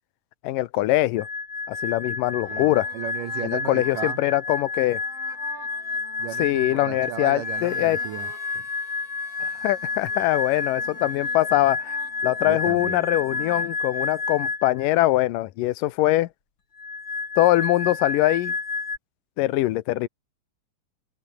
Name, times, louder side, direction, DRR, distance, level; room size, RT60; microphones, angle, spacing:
voice 1, 0.4-1.3 1.7-2.9 3.4-5.0 6.4-8.0 9.4-16.3 17.4-18.5 19.4-20.1, left 16 dB, 90° left, 2.5 m, -23 dB
sound 1, 1.2-14.9 16.8-19.0, left 4 dB, 35° left, 3.8 m, -30 dB
sound 2, 2.4-8.5 9.0-13.8, right 3 dB, 45° right, 7.1 m, -49 dB
voice 2, 2.5-4.2 6.2-8.7 12.4-13.1, right 12 dB, 80° right, 2.9 m, -35 dB
Harmonica, 7.3-12.4, left 3 dB, 65° left, 8.8 m, -53 dB
open air
omnidirectional pair, 3.7 m